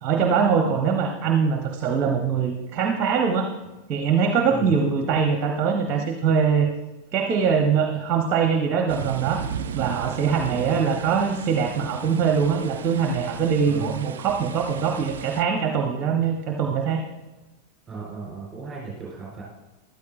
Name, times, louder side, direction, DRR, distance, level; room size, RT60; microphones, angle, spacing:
voice 1, 0.0-3.5 3.9-6.7 7.1-9.4 9.7-17.0, right 6 dB, 35° right, 4 dB, 0.9 m, -22 dB
sound 1, 8.9-15.4, right 8 dB, 60° right, 0.5 m, -36 dB
voice 2, 10.4-10.8 13.6-14.0 17.9-19.4, right 4 dB, 15° right, -4 dB, 3.8 m, -36 dB
13.0 x 11.5 x 2.4 m, 1.1 s
figure-of-eight pair, 90°, 0 cm